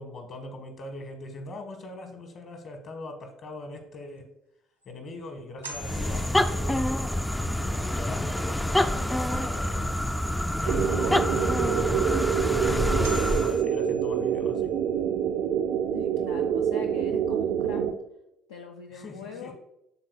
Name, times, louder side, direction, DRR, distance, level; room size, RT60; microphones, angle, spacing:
voice 1, 0.0-4.3 4.8-6.9 7.6-9.9 10.5-11.7 12.6-14.7 18.9-19.5, left 2 dB, 45° left, 5 dB, 1.2 m, -41 dB
sound 1, 4.2-4.3 4.8-4.9 5.6-7.2 12.3-12.4 13.0-14.7, right 1 dB, 90° right, 0.7 m, -45 dB
sound 2, 5.7-13.6, left 1 dB, 5° left, 0.3 m, -27 dB
sound 3, 10.7-17.9, right 8 dB, 55° right, 0.4 m, -26 dB
voice 2, 15.9-17.8 18.5-19.5, left 6 dB, 70° left, 1 dB, 0.4 m, -42 dB
11.5 x 3.9 x 2.3 m, 0.82 s
figure-of-eight pair, 55°, 0 cm